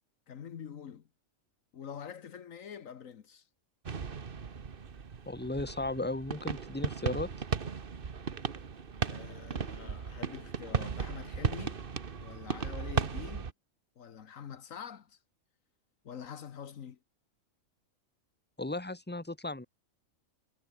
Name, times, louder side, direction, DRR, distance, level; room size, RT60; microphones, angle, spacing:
voice 1, 0.3-1.1 1.7-3.5 9.0-11.8 12.2-13.5 14.0-15.2 16.0-17.0, left 8 dB, 75° left, 1.5 m, -46 dB
sound 1, 3.9-13.5, right 6 dB, 45° right, 1.3 m, -36 dB
voice 2, 5.2-7.3 18.6-19.7, left 2 dB, 5° left, 1.8 m, -35 dB
omnidirectional pair, 1.4 m